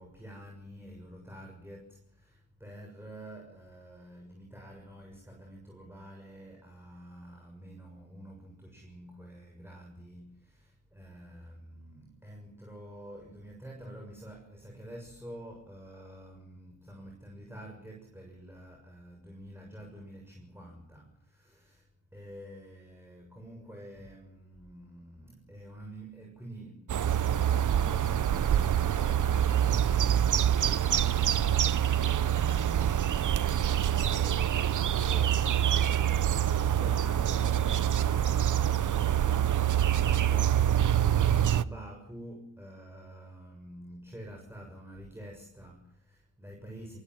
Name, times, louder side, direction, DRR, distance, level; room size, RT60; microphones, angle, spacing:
voice 1, 0.0-47.0, right 1 dB, 5° right, 6.7 m, -48 dB
sound 1, 26.9-41.6, right 10 dB, 45° right, 1.1 m, -26 dB
23.0 x 21.5 x 7.8 m
supercardioid pair, 70°, 42 cm